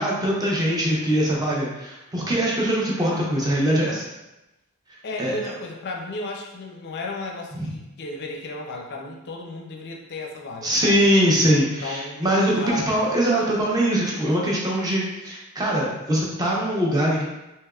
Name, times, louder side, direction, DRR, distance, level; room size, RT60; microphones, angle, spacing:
voice 1, 0.0-4.0 4.9-5.5 7.5-7.7 10.6-17.2, equal, 15° right, -4 dB, 0.6 m, -22 dB
voice 2, 3.1-3.5 5.0-11.0 11.8-13.0, left 2 dB, 50° left, 1 dB, 0.5 m, -34 dB
3.4 x 2.8 x 2.3 m, 0.98 s
head